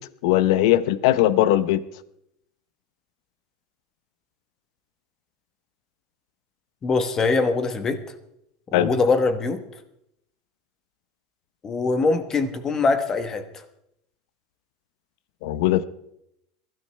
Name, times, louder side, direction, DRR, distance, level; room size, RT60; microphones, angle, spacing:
voice 1, 0.2-1.8 8.7-8.9 15.4-15.8, left 14 dB, 65° left, 15 dB, 0.7 m, -19 dB
voice 2, 6.8-8.0 8.7-9.6 11.6-13.6, left 3 dB, 20° left, 10 dB, 1.0 m, -23 dB
23.0 x 12.5 x 3.3 m, 0.77 s
supercardioid pair, 170°, 3 cm